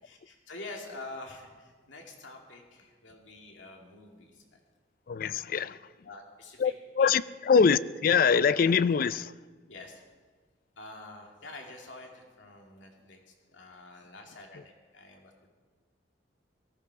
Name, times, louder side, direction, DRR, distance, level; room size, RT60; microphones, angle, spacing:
voice 1, 0.0-4.5 6.0-6.7 7.0-7.1 7.5-7.6 9.7-10.0 10.8-15.5, left 2 dB, 85° left, 2.5 m, -47 dB
voice 2, 5.1-5.8 6.6-9.3, left 6 dB, 50° left, 0.4 m, -24 dB
18.5 x 15.0 x 4.8 m
head